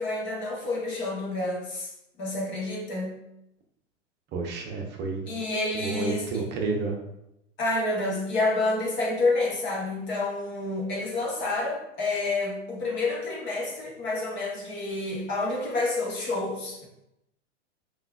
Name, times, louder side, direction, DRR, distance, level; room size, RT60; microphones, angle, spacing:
voice 1, 0.0-1.9 2.2-3.1 5.3-6.5 7.6-16.9, left 2 dB, 30° left, -2 dB, 1.0 m, -29 dB
voice 2, 4.3-5.2 5.7-6.9, right 3 dB, 30° right, 1 dB, 0.7 m, -30 dB
5.7 x 2.4 x 2.3 m, 0.85 s
hypercardioid pair, 115°, 38 cm